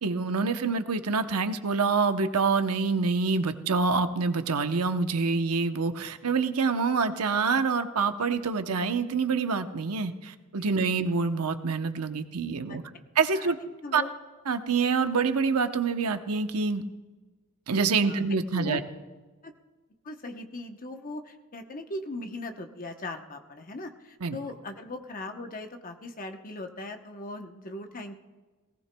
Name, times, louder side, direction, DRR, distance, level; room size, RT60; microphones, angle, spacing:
voice 1, 0.0-12.8 13.2-13.6 13.9-14.0 14.5-16.8 17.7-18.8 24.2-24.4, right 4 dB, 85° right, 8 dB, 0.8 m, -26 dB
voice 2, 18.5-18.8 19.4-19.5 20.0-28.1, left 2 dB, 40° left, 5 dB, 0.9 m, -39 dB
19.0 x 17.5 x 2.2 m, 1.3 s
head